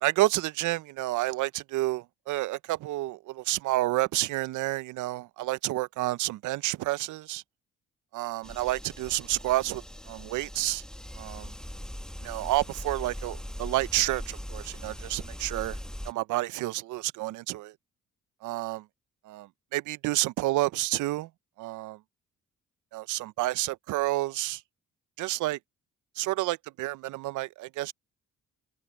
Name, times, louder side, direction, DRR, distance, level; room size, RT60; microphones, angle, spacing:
voice 1, 0.0-7.4 8.1-10.8 11.2-11.5 12.2-15.8 16.1-17.7 18.4-18.8 19.3-21.3 21.6-22.0 22.9-24.6 25.2-25.6 26.2-27.9, right 17 dB, 80° right, 0.5 m, -30 dB
sound 1, 8.4-16.1, equal, ahead, 1.6 m, -40 dB
cardioid pair, 90°, 30 cm